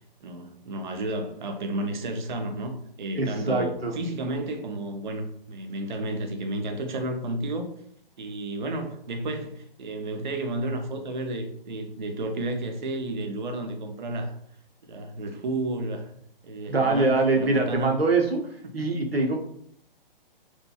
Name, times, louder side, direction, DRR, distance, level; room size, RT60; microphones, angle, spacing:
voice 1, 0.2-7.7 8.2-14.4 14.9-16.1 16.4-17.9 18.8-18.9, right 2 dB, 55° right, 6 dB, 0.5 m, -32 dB
voice 2, 3.2-4.0 16.7-19.4, right 3 dB, 90° right, 2 dB, 0.7 m, -24 dB
2.7 x 2.2 x 2.3 m, 0.65 s
figure-of-eight pair, 130°, 29 cm